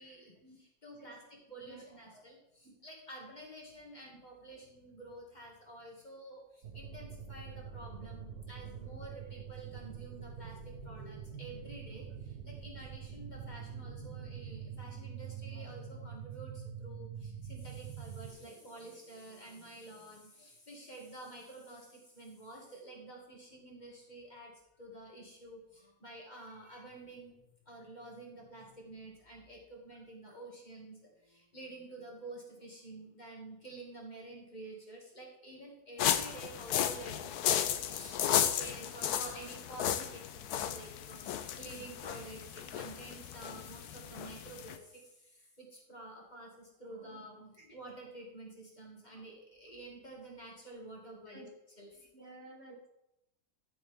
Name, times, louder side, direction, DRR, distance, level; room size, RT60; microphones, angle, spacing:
voice 1, 0.0-24.5 24.8-27.4 27.7-31.0 31.2-45.0 45.6-51.5 51.8-52.0, right 2 dB, 30° left, -2 dB, 2.2 m, -50 dB
sound 1, 6.6-18.3, right 7 dB, 90° right, 1.6 m, -45 dB
sound 2, 36.0-44.8, left 10 dB, 80° left, 1.2 m, -34 dB
voice 2, 52.1-52.9, right 2 dB, 45° right, 1 dB, 1.4 m, -53 dB
13.0 x 7.1 x 3.5 m, 0.85 s
omnidirectional pair, 1.6 m